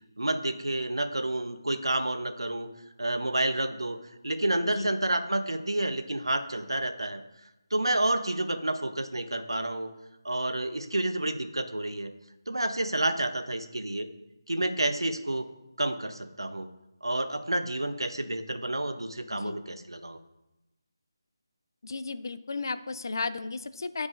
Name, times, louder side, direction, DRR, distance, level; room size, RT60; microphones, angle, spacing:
voice 1, 0.2-2.7 3.0-4.0 4.2-7.2 7.7-9.9 10.2-12.1 12.5-14.1 14.5-15.5 15.8-16.7 17.0-20.2, right 1 dB, 90° right, 8 dB, 0.5 m, -29 dB
voice 2, 21.8-24.1, left 3 dB, 60° left, 13 dB, 0.4 m, -34 dB
9.1 x 4.7 x 2.4 m, 0.95 s
figure-of-eight pair, 160°, 2 cm